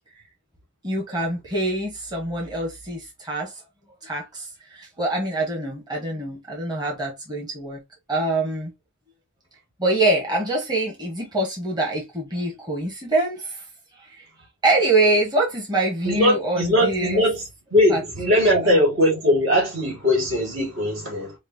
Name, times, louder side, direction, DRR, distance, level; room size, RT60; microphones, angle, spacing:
voice 1, 0.8-3.5 4.0-7.8 8.1-8.7 9.8-13.6 14.0-14.2 14.6-17.2 17.9-18.0 18.5-18.8, right 2 dB, 20° right, 1.0 m, -25 dB
voice 2, 16.0-17.4 17.7-21.3, left 1 dB, 70° right, 2.1 m, -20 dB
5.2 x 2.1 x 2.6 m
head